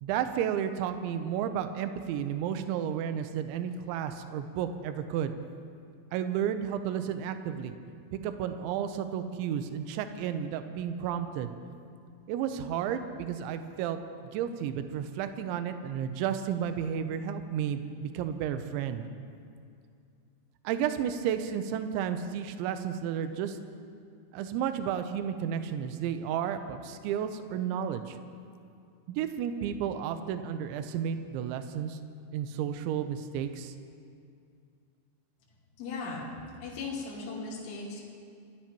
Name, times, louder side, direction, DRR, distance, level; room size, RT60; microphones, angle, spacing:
voice 1, 0.0-5.3 6.1-7.8 8.1-11.5 12.3-14.0 14.3-19.0 20.6-23.6 24.3-28.2 29.1-32.0 32.3-33.7, right 9 dB, 80° right, 8 dB, 2.9 m, -32 dB
voice 2, 35.8-36.3 36.6-38.0, left 4 dB, 70° left, -6 dB, 4.9 m, -37 dB
26.5 x 16.0 x 3.0 m, 2.4 s
omnidirectional pair, 5.7 m